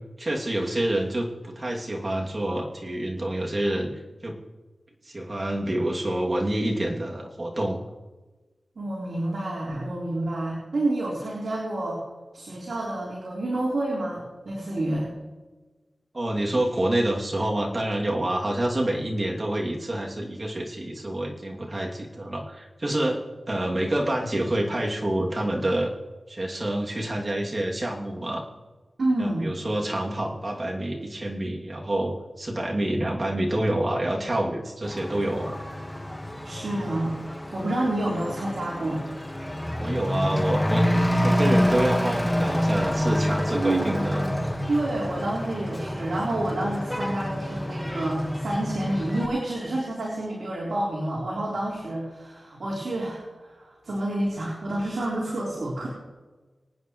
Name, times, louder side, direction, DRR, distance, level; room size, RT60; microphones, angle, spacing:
voice 1, 0.2-3.9 4.2-4.4 5.0-7.8 16.1-25.9 26.3-28.4 29.2-35.6 39.8-44.3, right 1 dB, 40° right, -1 dB, 2.6 m, -27 dB
voice 2, 8.8-12.0 12.3-15.1 29.0-29.5 36.4-37.2 37.5-39.0 43.5-44.0 44.7-55.9, right 1 dB, 75° right, -4 dB, 3.8 m, -28 dB
Truck / Accelerating revving vroom, 34.8-49.3, equal, 10° left, 1.5 m, -27 dB
25.0 x 9.5 x 3.1 m, 1.3 s
wide cardioid pair, 75°, 0 cm